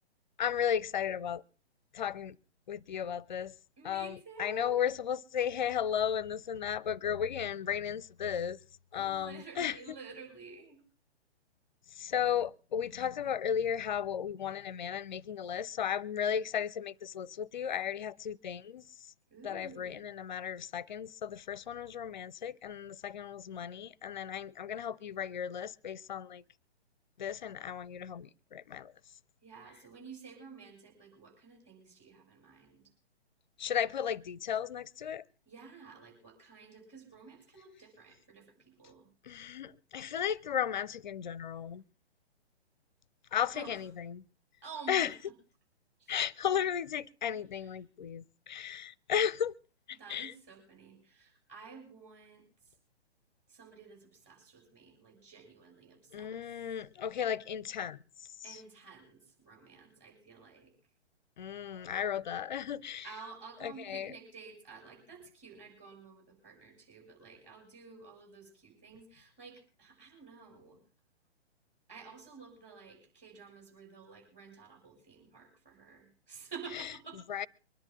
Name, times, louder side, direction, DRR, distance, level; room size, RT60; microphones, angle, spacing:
voice 1, 0.4-1.4 1.9-2.4 2.7-3.5 3.8-8.6 8.9-10.0 11.9-18.8 19.4-26.4 27.2-28.9 33.6-35.2 39.2-41.8 43.3-44.2 44.9-45.1 46.1-49.6 49.9-50.3 56.1-58.0 58.5-58.6 61.4-63.1 63.6-64.2 76.7-76.9 77.3-77.5, left 8 dB, 45° left, 0.6 m, -35 dB
voice 2, 3.8-4.7 8.9-10.8 19.3-20.0 29.4-32.8 35.5-39.1 43.5-43.8 44.6-45.1 46.0-46.2 47.6-47.7 49.9-52.4 53.5-56.4 58.4-60.7 63.0-70.8 71.9-77.2, right 5 dB, 20° right, 6.6 m, -51 dB
24.0 x 10.5 x 3.6 m
figure-of-eight pair, 125°, 33 cm